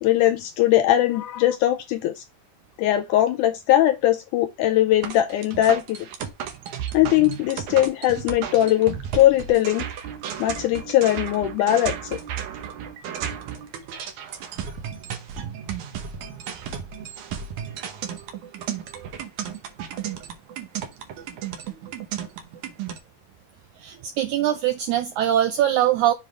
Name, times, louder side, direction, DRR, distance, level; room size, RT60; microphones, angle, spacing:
voice 1, 0.0-2.2 2.8-6.1 6.9-9.9 10.4-12.2, left 13 dB, 85° left, 1.8 m, -20 dB
sound 1, 5.0-23.0, right 8 dB, 70° right, 2.2 m, -34 dB
voice 2, 23.8-26.1, right 11 dB, 85° right, 1.7 m, -22 dB
7.4 x 4.9 x 3.3 m
omnidirectional pair, 4.0 m